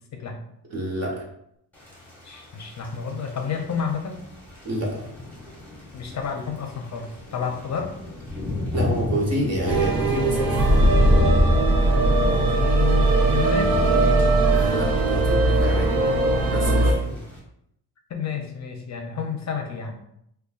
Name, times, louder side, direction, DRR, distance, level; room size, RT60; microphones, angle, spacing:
voice 1, 0.7-1.2 4.6-5.0 8.7-10.9 14.5-16.0 16.5-17.2, right 1 dB, 40° right, -1 dB, 1.1 m, -28 dB
Thunder / Rain, 1.7-17.4, left 2 dB, 5° left, 1.2 m, -32 dB
voice 2, 2.2-4.2 5.9-7.9 12.3-13.7 18.1-20.0, left 6 dB, 45° left, 3 dB, 0.6 m, -30 dB
sound 1, 9.7-16.9, right 2 dB, 60° right, 0.8 m, -19 dB
5.1 x 2.3 x 2.4 m, 0.74 s
cardioid pair, 120°, 39 cm